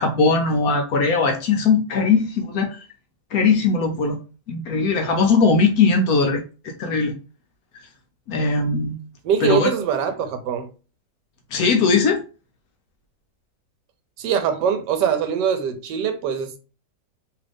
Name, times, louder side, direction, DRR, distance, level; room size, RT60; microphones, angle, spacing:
voice 1, 0.0-2.8 3.3-4.2 4.5-7.1 8.3-9.0 9.4-9.7 11.5-12.2, left 4 dB, 70° left, 1.0 m, -19 dB
voice 2, 9.2-10.7 14.2-16.6, right 7 dB, 80° right, 1.3 m, -23 dB
3.0 x 2.5 x 3.4 m
omnidirectional pair, 1.8 m